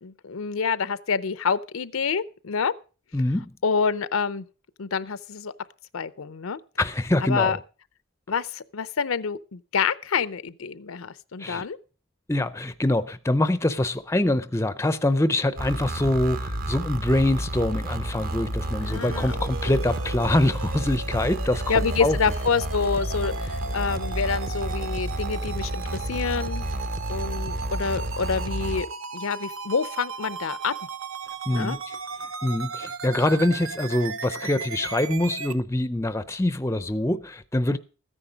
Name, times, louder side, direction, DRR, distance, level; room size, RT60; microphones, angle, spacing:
voice 1, 0.0-2.7 3.6-4.5 4.8-5.5 5.9-6.6 7.2-7.6 8.3-11.8 18.8-19.3 19.6-19.8 21.7-26.7 27.1-28.9 29.1-30.7 31.5-31.8, left 5 dB, 80° left, 0.6 m, -27 dB
voice 2, 3.1-3.5 6.8-7.6 11.4-11.7 12.3-22.2 31.5-32.0 32.4-37.8, left 1 dB, 15° left, 0.5 m, -24 dB
sound 1, 15.6-28.8, right 1 dB, 40° right, 1.0 m, -30 dB
sound 2, 18.9-35.5, right 5 dB, 75° right, 0.9 m, -37 dB
14.0 x 10.0 x 5.1 m
head